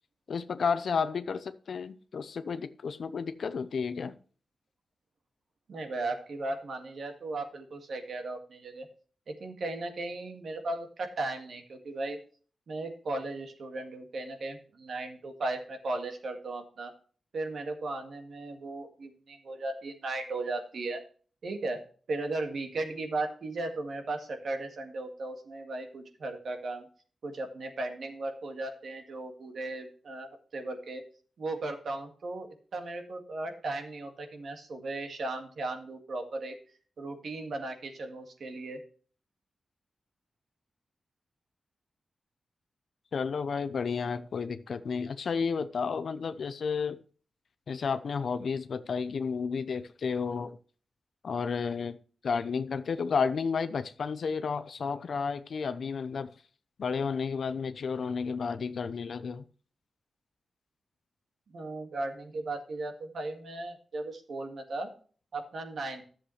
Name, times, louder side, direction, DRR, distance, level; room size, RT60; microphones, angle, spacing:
voice 1, 0.3-4.2 43.1-47.0 47.7-50.5 51.2-52.0 52.2-56.3 56.8-59.4, left 5 dB, 75° left, 0.7 m, -32 dB
voice 2, 5.7-8.9 9.3-12.2 12.7-16.9 17.3-21.0 21.4-26.9 27.2-31.0 31.4-36.6 37.0-38.8 61.5-64.9 65.3-66.0, right 2 dB, 75° right, 2.0 m, -36 dB
11.5 x 7.4 x 3.2 m
cardioid pair, 85°, 0 cm